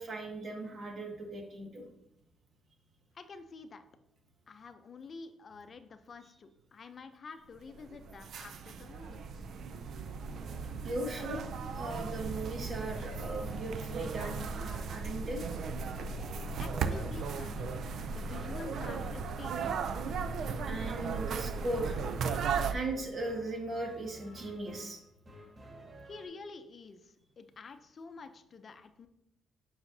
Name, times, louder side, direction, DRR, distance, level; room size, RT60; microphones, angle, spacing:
voice 1, 0.0-1.9 10.8-11.4 11.7-15.4 20.6-22.0 22.7-25.0, right 2 dB, 50° right, 1 dB, 1.8 m, -38 dB
voice 2, 3.1-3.9 4.5-9.5 16.6-17.7 18.1-19.8 26.0-29.1, left 4 dB, 45° left, 9 dB, 0.6 m, -48 dB
sound 1, 7.7-22.7, right 5 dB, 65° right, 0.4 m, -36 dB
sound 2, 10.1-26.3, right 1 dB, 25° right, 1.8 m, -53 dB
8.0 x 5.7 x 2.7 m, 0.81 s
cardioid pair, 90°, 0 cm